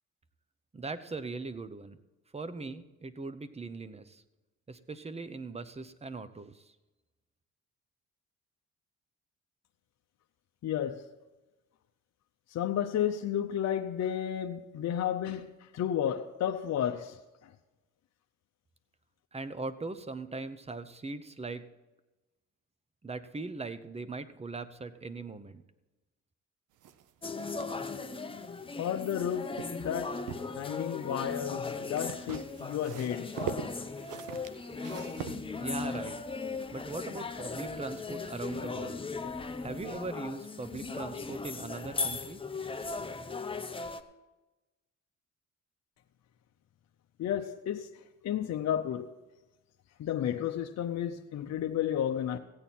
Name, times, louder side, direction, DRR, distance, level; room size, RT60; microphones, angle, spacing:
voice 1, 0.7-2.0 2.3-4.2 4.7-6.7 19.3-21.7 23.0-25.6 35.6-36.2 36.7-39.0 39.6-42.4, right 3 dB, 20° right, 0.9 m, -40 dB
voice 2, 10.6-11.1 12.5-17.5 28.8-30.2 30.5-33.3 47.2-49.1 50.0-52.4, left 10 dB, 60° left, 0.7 m, -32 dB
sound 1, 26.8-29.2 29.5-30.5 31.9-36.0, right 8 dB, 85° right, 0.7 m, -42 dB
sound 2, 27.2-44.0, left 4 dB, 20° left, 0.7 m, -38 dB
16.0 x 8.9 x 4.3 m
cardioid pair, 90°, 30 cm